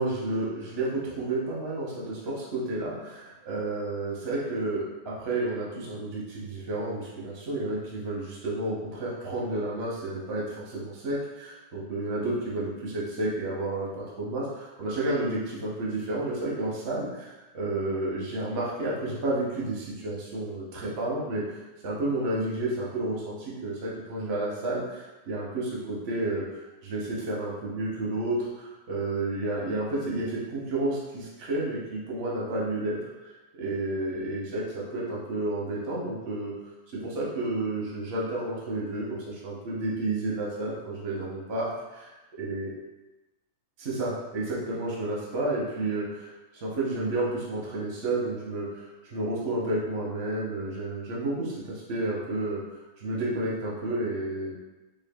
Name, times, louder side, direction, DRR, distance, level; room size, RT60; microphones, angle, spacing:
voice 1, 0.0-21.6 21.8-26.5 26.8-33.0 33.2-36.5 36.9-42.1 42.4-42.7 43.8-52.6 53.0-54.5, right 2 dB, 50° right, -5 dB, 0.7 m, -31 dB
5.5 x 2.4 x 2.3 m, 1.1 s
omnidirectional pair, 2.2 m